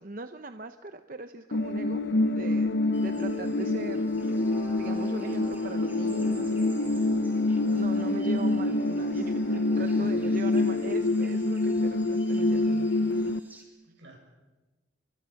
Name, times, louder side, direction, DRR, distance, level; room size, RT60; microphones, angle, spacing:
voice 1, 0.0-4.3 4.7-7.3 7.7-13.8, right 2 dB, 45° right, 8 dB, 0.8 m, -41 dB
sound 1, 1.5-13.4, left 2 dB, 65° left, 0.8 m, -26 dB
sound 2, 2.9-13.6, right 2 dB, 10° right, 3.3 m, -54 dB
Brass instrument, 4.2-10.1, left 1 dB, 30° left, 7.5 m, -45 dB
voice 2, 9.7-10.3 13.8-14.2, right 1 dB, 75° right, 2 dB, 7.1 m, -49 dB
29.5 x 24.0 x 5.9 m, 1.2 s
head